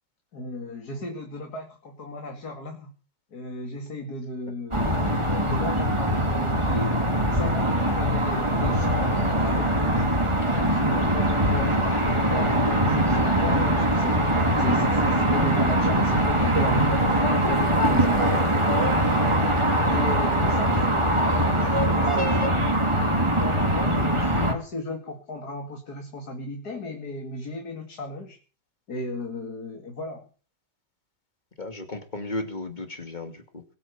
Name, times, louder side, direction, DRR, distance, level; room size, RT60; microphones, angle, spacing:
voice 1, 0.3-2.9 3.3-7.0 7.3-10.0 10.5-14.2 14.6-18.2 19.9-22.6 23.3-28.4 28.9-30.2, left 2 dB, 60° left, 4 dB, 2.9 m, -35 dB
sound 1, 4.7-24.5, right 1 dB, 15° right, 2.8 m, -22 dB
voice 2, 31.6-33.6, left 2 dB, 25° left, 7 dB, 2.6 m, -34 dB
21.0 x 8.9 x 7.1 m, 0.39 s
omnidirectional pair, 1.9 m